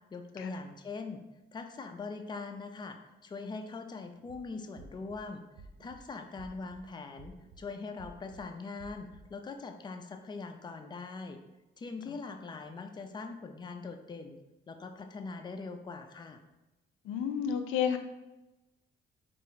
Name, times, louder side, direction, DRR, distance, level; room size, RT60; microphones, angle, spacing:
voice 1, 0.1-1.2 1.5-5.4 5.8-11.4 11.8-14.4 14.7-16.4, left 4 dB, 20° left, 6 dB, 0.4 m, -42 dB
sound 1, 4.2-4.4 4.8-5.2 5.6-6.0 6.4-6.8 7.2-7.6 8.0-8.4 8.8-9.2, right 5 dB, 85° right, 0.5 m, -53 dB
voice 2, 17.0-18.0, left 8 dB, 85° left, 7 dB, 0.4 m, -31 dB
3.8 x 2.5 x 4.1 m, 1.0 s
cardioid pair, 90°, 20 cm